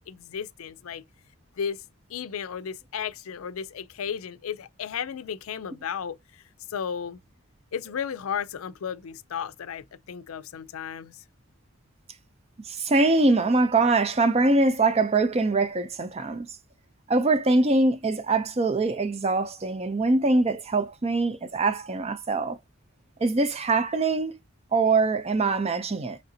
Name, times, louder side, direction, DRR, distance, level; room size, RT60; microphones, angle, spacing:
voice 1, 0.1-1.0 1.6-1.8 2.1-6.2 6.7-7.2 7.7-11.2, left 7 dB, 90° left, 0.4 m, -34 dB
voice 2, 12.7-16.5 17.1-22.6 23.2-24.4 24.7-26.2, right 3 dB, 30° right, 0.5 m, -23 dB
3.8 x 3.3 x 2.7 m
head